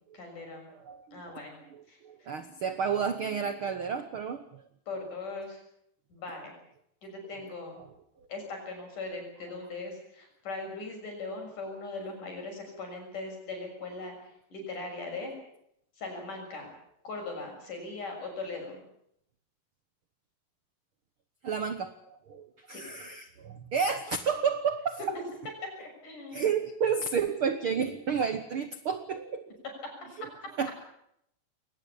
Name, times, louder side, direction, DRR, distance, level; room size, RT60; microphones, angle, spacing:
voice 1, 0.1-0.7 1.1-1.6 1.9-2.3 4.9-5.6 6.1-6.5 7.0-7.8 8.3-14.2 14.5-15.3 16.0-16.7 17.0-18.8 22.7-22.8 25.8-26.5 29.8-29.9, left 3 dB, 55° left, 3 dB, 8.1 m, -39 dB
voice 2, 0.8-1.4 1.7-4.6 21.4-21.9 22.3-25.0 26.3-29.5 30.2-30.3 30.6-30.7, right 6 dB, 75° right, 10 dB, 1.2 m, -31 dB
22.0 x 19.0 x 8.6 m, 0.74 s
omnidirectional pair, 4.2 m